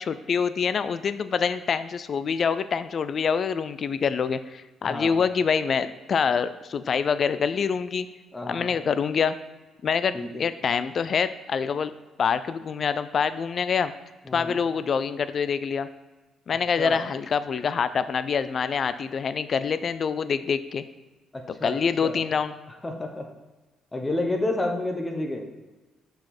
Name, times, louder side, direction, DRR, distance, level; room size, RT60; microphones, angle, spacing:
voice 1, 0.0-8.1 8.5-9.4 9.8-11.9 12.2-13.9 14.3-15.9 16.5-20.8 21.6-22.5, left 6 dB, 50° left, 13 dB, 0.3 m, -26 dB
voice 2, 4.8-5.2 8.3-8.7 10.1-10.4 14.3-14.6 16.8-17.0 21.3-22.2 22.8-23.2 23.9-25.4, left 2 dB, 20° left, 3 dB, 0.9 m, -30 dB
6.3 x 4.7 x 4.3 m, 1.2 s
cardioid pair, 90°, 0 cm